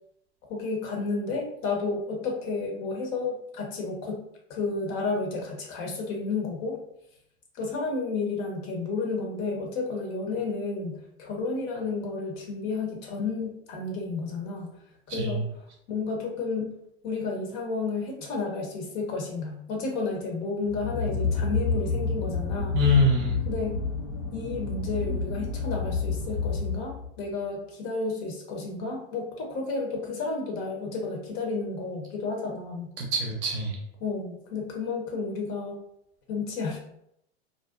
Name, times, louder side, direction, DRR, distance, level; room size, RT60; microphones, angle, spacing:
voice 1, 0.5-4.2 4.5-6.8 7.5-14.7 15.1-15.4 15.9-16.7 17.0-22.8 23.5-23.7 24.3-32.9 34.0-35.8 36.3-36.8, left 3 dB, 45° left, 1 dB, 0.7 m, -31 dB
voice 2, 15.1-15.4 22.7-23.4 33.0-33.8, left 1 dB, 35° right, 0 dB, 0.7 m, -24 dB
sound 1, 20.6-27.2, left 4 dB, 80° left, 1.0 m, -29 dB
2.5 x 2.2 x 2.3 m, 0.75 s
hypercardioid pair, 100°, 33 cm